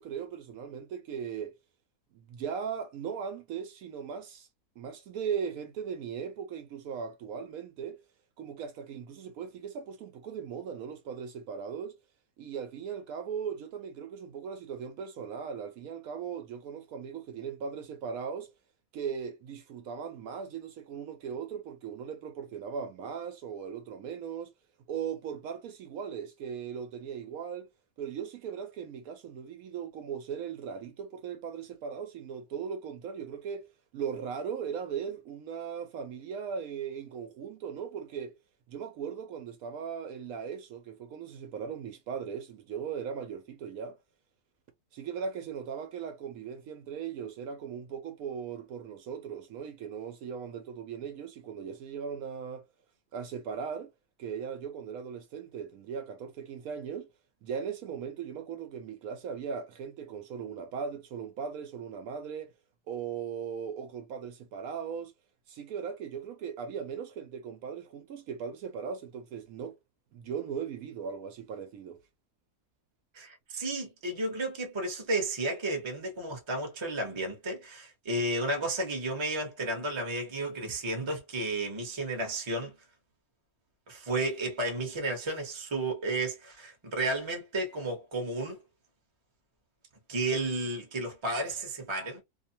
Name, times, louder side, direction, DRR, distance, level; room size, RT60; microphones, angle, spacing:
voice 1, 0.0-1.5 2.1-4.5 4.8-8.0 8.4-11.9 12.4-18.5 18.9-24.5 24.9-27.7 28.0-38.4 38.7-44.0 44.9-52.7 53.1-53.9 54.2-57.1 57.4-62.5 62.9-65.1 65.5-69.7 70.1-72.0, right 7 dB, 75° right, 1.0 m, -38 dB
voice 2, 73.1-82.7 83.9-88.6 90.1-92.2, right 2 dB, 25° right, 0.7 m, -32 dB
2.7 x 2.1 x 2.7 m
omnidirectional pair, 1.6 m